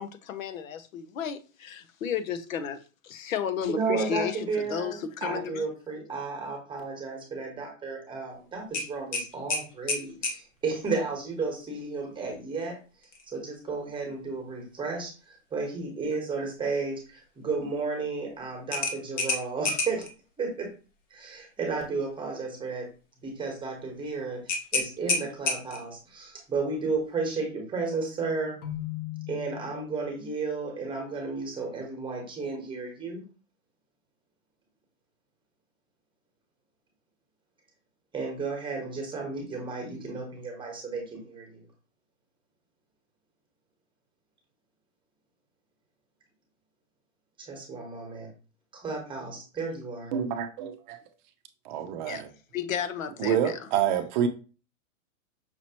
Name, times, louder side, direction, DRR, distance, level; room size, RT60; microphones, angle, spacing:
voice 1, 0.0-2.8 3.0-5.6 52.1-52.2 52.5-53.6, left 8 dB, 85° left, 0.8 m, -33 dB
voice 2, 3.6-4.9 5.2-12.8 13.3-20.1 20.4-20.7 21.1-22.9 23.2-28.6 29.3-33.2 38.1-41.6 47.4-48.3 48.7-50.1, right 4 dB, 10° right, 1.1 m, -33 dB
sound 1, 8.7-10.4 13.0-13.3 13.7-13.8 18.7-20.1 24.5-25.9, left 3 dB, 65° left, 1.5 m, -29 dB
Keyboard (musical), 28.6-30.5, left 14 dB, 25° left, 0.7 m, -38 dB
voice 3, 50.1-51.0 51.7-52.3 53.2-54.3, right 9 dB, 40° right, 0.5 m, -27 dB
5.9 x 2.9 x 2.9 m
hypercardioid pair, 140°, 39 cm